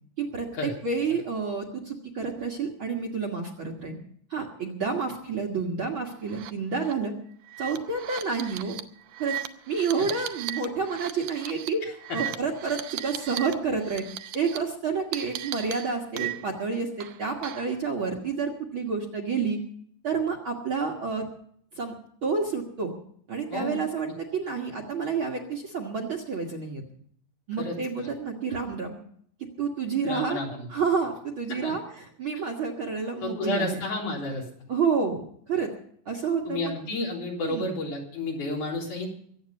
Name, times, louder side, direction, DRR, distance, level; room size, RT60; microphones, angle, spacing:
voice 1, 0.2-4.0 4.3-7.1 7.6-8.8 9.2-9.4 9.7-14.1 14.3-19.6 20.0-21.3 21.7-21.9 22.2-22.9 23.3-26.8 27.5-29.0 29.6-30.4 30.7-33.8 34.7-35.7 36.1-36.7 37.4-37.8, right 5 dB, 45° right, 2 dB, 1.9 m, -29 dB
sound 1, 6.3-6.5 6.8-6.9 7.5-13.5 13.8-14.6 15.1-16.6 17.0-17.8, right 13 dB, 75° right, 2.2 m, -37 dB
voice 2, 23.5-24.1 27.6-27.7 30.0-30.7 31.5-31.7 33.2-34.5 36.4-39.1, left 2 dB, 60° left, -1 dB, 5.0 m, -31 dB
23.5 x 8.9 x 5.3 m, 0.62 s
omnidirectional pair, 4.0 m